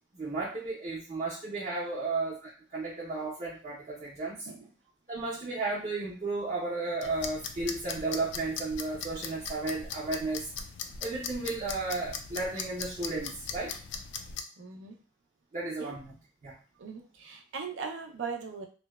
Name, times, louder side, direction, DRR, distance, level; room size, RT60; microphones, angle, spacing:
voice 1, 0.1-4.5 5.1-10.5 11.0-13.7 15.5-16.2 16.4-16.6, right 3 dB, 40° right, -6 dB, 0.6 m, -34 dB
Kitchen timer - ticking and ringing, 7.0-14.4, left 6 dB, 75° left, 0.3 m, -40 dB
voice 2, 14.6-14.9 15.8-15.9 16.8-18.7, right 5 dB, 85° right, 2 dB, 0.5 m, -39 dB
2.7 x 2.1 x 2.2 m, 0.37 s
head